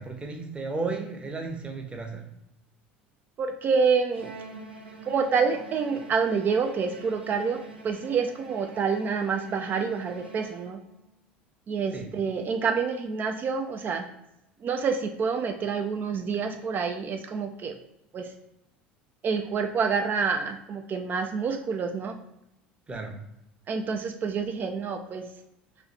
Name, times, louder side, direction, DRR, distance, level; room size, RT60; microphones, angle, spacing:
voice 1, 0.0-2.3 11.9-12.1 22.9-23.2, right 3 dB, 20° right, 2 dB, 0.9 m, -34 dB
voice 2, 3.4-4.3 5.1-10.8 11.7-14.0 14.6-17.8 18.1-18.3 19.2-22.2 23.7-25.3, right 5 dB, 35° right, 5 dB, 0.4 m, -27 dB
Bowed string instrument, 4.1-11.1, right 3 dB, 85° right, 0.8 m, -46 dB
3.1 x 2.8 x 4.1 m, 0.84 s
figure-of-eight pair, 70°, 6 cm